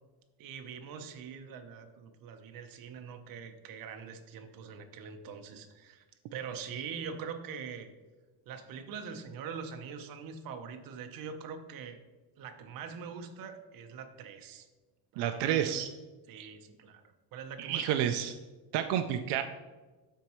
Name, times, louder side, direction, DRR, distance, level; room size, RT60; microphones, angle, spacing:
voice 1, 0.4-6.0 6.3-7.9 8.5-12.0 12.4-14.7 15.1-15.8 16.3-17.0 17.3-18.3, right 6 dB, 55° right, 6 dB, 0.9 m, -43 dB
voice 2, 15.2-15.9 16.4-16.5 17.6-18.3 18.7-19.4, right 10 dB, 85° right, 7 dB, 0.6 m, -30 dB
12.5 x 4.6 x 3.1 m, 1.3 s
cardioid pair, 160°, 40 cm